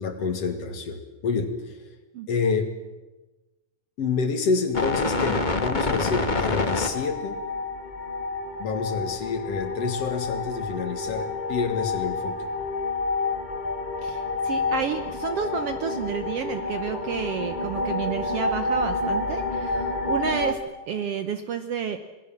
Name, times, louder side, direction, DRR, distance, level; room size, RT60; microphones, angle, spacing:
voice 1, 0.0-1.9 2.3-2.7 4.0-7.4 8.6-12.5, left 4 dB, 55° left, 7 dB, 2.8 m, -28 dB
sound 1, 4.7-20.5, left 3 dB, 75° left, 0.4 m, -28 dB
voice 2, 14.0-20.6 20.9-22.0, right 7 dB, 65° right, 9 dB, 1.6 m, -30 dB
27.0 x 19.5 x 7.5 m, 1.1 s
omnidirectional pair, 3.6 m